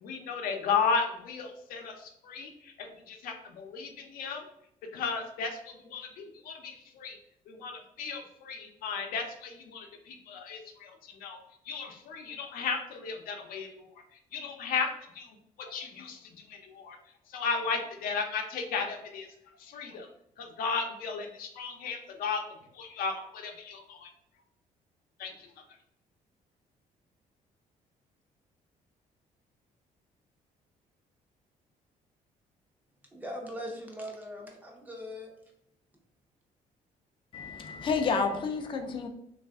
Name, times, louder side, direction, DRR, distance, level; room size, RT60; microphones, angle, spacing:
voice 1, 0.0-4.4 4.9-5.6 5.8-7.2 7.5-11.4 11.7-13.8 14.3-14.9 15.1-15.3 15.6-17.0 17.3-19.3 19.6-20.1 20.4-22.4 22.7-24.1 25.2-25.5, left 5 dB, 85° left, 0.6 m, -34 dB
voice 2, 33.1-35.3, equal, 10° right, 0.6 m, -40 dB
voice 3, 37.3-39.1, left 5 dB, 35° left, 0.4 m, -30 dB
3.2 x 2.4 x 3.5 m
cardioid pair, 160°, 15 cm